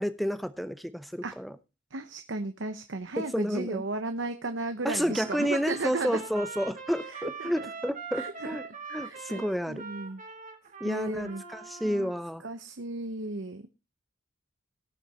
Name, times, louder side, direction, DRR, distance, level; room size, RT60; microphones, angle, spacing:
voice 1, 0.0-1.6 3.2-3.8 4.8-8.6 8.9-9.8 10.8-12.4, equal, ahead, 12 dB, 0.7 m, -30 dB
voice 2, 1.9-6.2 7.1-7.5 8.1-8.5 9.0-10.2 10.8-11.4 11.8-12.1 12.4-13.7, right 2 dB, 65° right, 8 dB, 0.9 m, -35 dB
Trumpet, 5.1-12.2, right 5 dB, 40° right, 1.7 m, -42 dB
18.0 x 6.6 x 4.3 m, 0.28 s
head